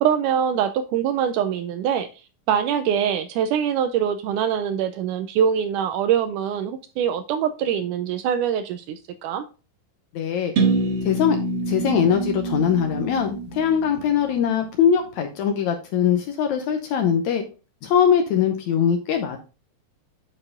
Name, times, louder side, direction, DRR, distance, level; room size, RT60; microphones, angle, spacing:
voice 1, 0.0-2.1 2.5-9.5, right 8 dB, 80° right, 10 dB, 1.9 m, -23 dB
voice 2, 10.1-10.5 11.0-11.4 11.7-17.4 17.8-19.4, left 8 dB, 75° left, 5 dB, 1.8 m, -21 dB
sound 1, 10.6-14.4, right 3 dB, 50° right, 1.4 m, -26 dB
8.7 x 4.7 x 3.7 m, 0.33 s
omnidirectional pair, 4.0 m